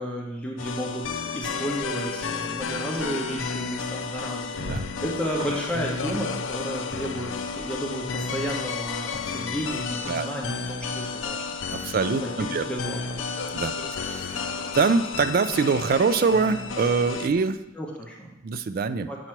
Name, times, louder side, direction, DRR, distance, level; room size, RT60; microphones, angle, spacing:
voice 1, 0.0-11.4 12.2-13.3 17.8-18.3 19.1-19.2, equal, 5° left, -3 dB, 1.1 m, -32 dB
sound 1, 0.6-17.3, left 5 dB, 85° left, 0.5 m, -32 dB
sound 2, 4.3-17.7, equal, 85° right, 1.4 m, -46 dB
voice 2, 11.7-12.6 13.5-13.7 14.0-14.4 14.7-17.6 18.4-19.1, right 4 dB, 50° right, 12 dB, 0.3 m, -24 dB
7.7 x 3.0 x 5.8 m, 0.89 s
head